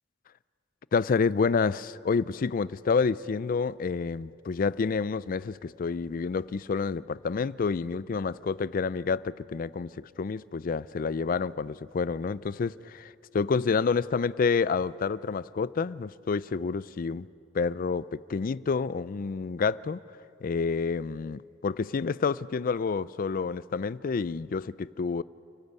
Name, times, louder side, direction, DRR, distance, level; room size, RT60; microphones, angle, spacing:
voice 1, 0.9-17.3 17.5-20.0 20.4-25.2, left 5 dB, 50° left, 0.4 m, -29 dB
29.5 x 12.0 x 8.2 m
head